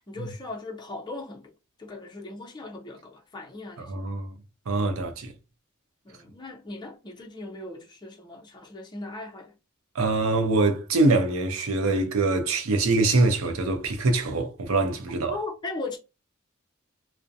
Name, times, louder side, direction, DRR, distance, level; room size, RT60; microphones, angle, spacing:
voice 1, 0.0-1.5 1.8-3.9 6.0-9.5 15.3-16.0, left 2 dB, 20° left, 0.5 m, -38 dB
voice 2, 3.8-4.3 4.7-5.3 9.9-15.4, right 3 dB, 90° right, 0.5 m, -24 dB
2.4 x 2.1 x 2.6 m
head